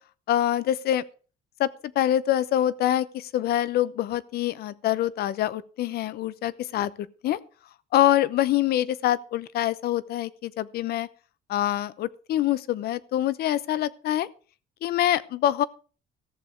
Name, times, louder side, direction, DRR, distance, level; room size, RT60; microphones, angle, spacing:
voice 1, 0.3-1.0 1.6-1.7 1.9-7.4 7.9-11.1 11.5-14.3 14.8-15.6, left 12 dB, 65° left, 0.8 m, -25 dB
14.5 x 7.1 x 6.3 m
cardioid pair, 110°, 17 cm